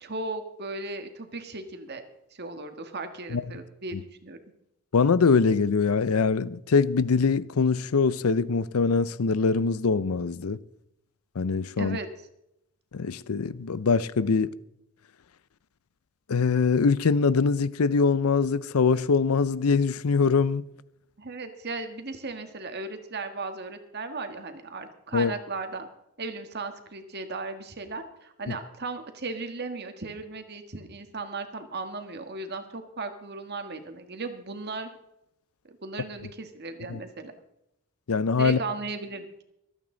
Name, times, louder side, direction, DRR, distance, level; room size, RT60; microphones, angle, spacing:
voice 1, 0.0-2.0 2.3-4.4 11.8-12.1 21.2-25.9 26.2-34.9 35.6-37.3 38.4-39.4, right 3 dB, 50° right, 1.7 m, -36 dB
voice 2, 4.9-10.6 11.4-12.0 12.9-14.5 16.3-20.6 25.1-25.3 28.5-28.6 36.9-37.0 38.1-38.6, left 5 dB, 90° left, 0.6 m, -23 dB
25.5 x 9.0 x 3.9 m
head